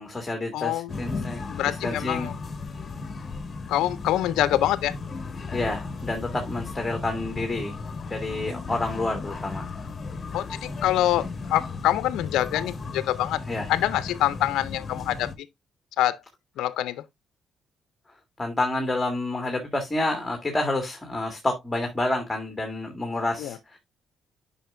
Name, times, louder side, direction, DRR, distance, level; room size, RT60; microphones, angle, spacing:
voice 1, 0.0-2.3 5.5-7.7 8.1-9.6 13.5-13.7 18.4-23.8, left 2 dB, 15° left, 1.8 m, -29 dB
voice 2, 0.5-0.9 1.5-2.3 3.7-4.9 10.3-13.4 13.7-15.3 16.0-16.2 16.6-17.0 23.4-23.6, left 13 dB, 85° left, 0.4 m, -25 dB
sound 1, 0.9-15.4, left 4 dB, 35° left, 1.2 m, -35 dB
9.0 x 5.6 x 2.5 m
cardioid pair, 90°, 0 cm